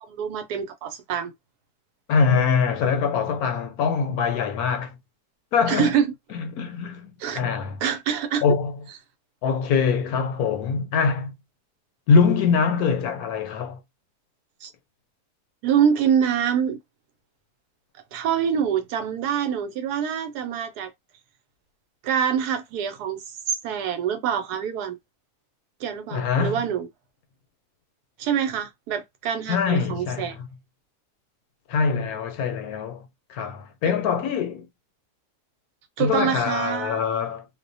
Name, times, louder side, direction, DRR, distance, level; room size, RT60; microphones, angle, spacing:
voice 1, 0.0-1.3 5.7-6.1 7.2-7.4 7.8-8.4 14.6-14.7 15.6-16.8 18.1-20.9 22.0-25.0 25.8-26.9 28.2-30.4 33.8-34.0 36.0-37.0, right 8 dB, 80° right, 1.1 m, -25 dB
voice 2, 2.1-5.0 5.5-5.9 6.3-7.8 8.4-8.8 9.4-11.3 12.1-13.8 26.1-26.6 29.5-30.3 31.7-34.7 36.0-37.5, left 5 dB, 75° left, 1.0 m, -23 dB
2.6 x 2.1 x 2.6 m
omnidirectional pair, 1.7 m